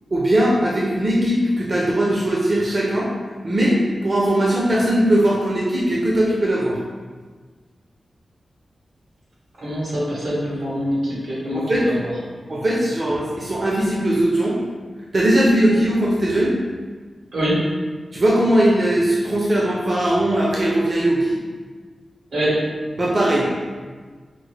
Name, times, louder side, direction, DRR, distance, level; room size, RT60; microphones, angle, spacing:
voice 1, 0.1-3.1 3.4-6.8 11.5-11.9 12.5-14.6 15.1-16.5 18.1-21.3 23.0-23.5, right 1 dB, 35° right, -4 dB, 0.5 m, -19 dB
voice 2, 9.6-11.0 11.3-11.6 17.3-17.6 22.3-22.5, equal, 85° right, -7 dB, 1.5 m, -23 dB
5.0 x 2.1 x 3.2 m, 1.5 s
wide cardioid pair, 140°, 0 cm